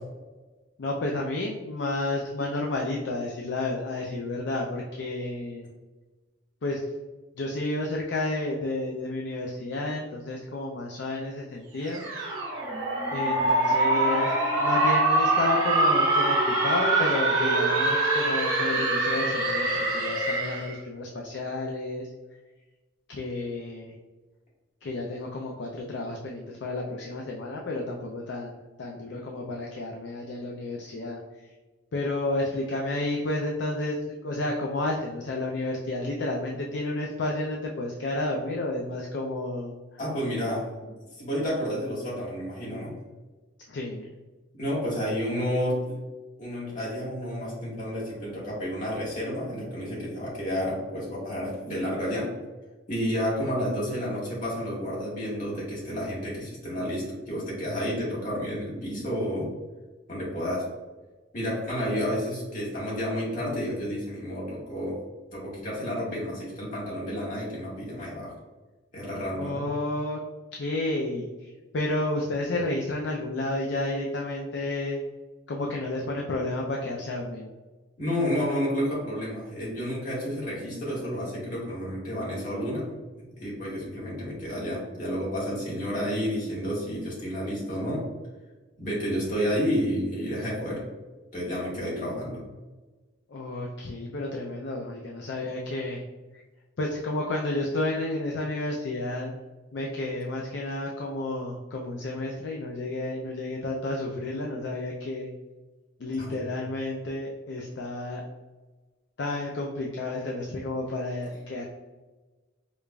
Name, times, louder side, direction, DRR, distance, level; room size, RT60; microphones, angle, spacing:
voice 1, 0.8-5.7 6.6-6.9 7.4-12.1 13.1-14.3 14.6-22.1 23.1-23.9 24.8-31.2 31.9-34.0 34.2-40.0 43.7-44.1 69.4-70.2 70.5-75.0 75.5-77.5 93.3-96.0 96.3-96.4 96.8-99.3 99.7-105.3 106.0-108.3 109.2-111.6, left 2 dB, 60° left, 0 dB, 0.4 m, -31 dB
sound 1, 11.9-20.7, right 2 dB, 85° right, 1.3 m, -24 dB
voice 2, 40.0-40.9 41.2-42.9 44.6-46.0 46.4-52.3 52.9-59.5 60.1-60.6 61.3-65.0 65.3-68.3 68.9-69.6 78.0-82.8 83.4-88.1 88.8-90.8 91.3-92.4 106.2-106.4, equal, 40° left, -6 dB, 1.5 m, -30 dB
4.9 x 2.4 x 2.2 m, 1.2 s
head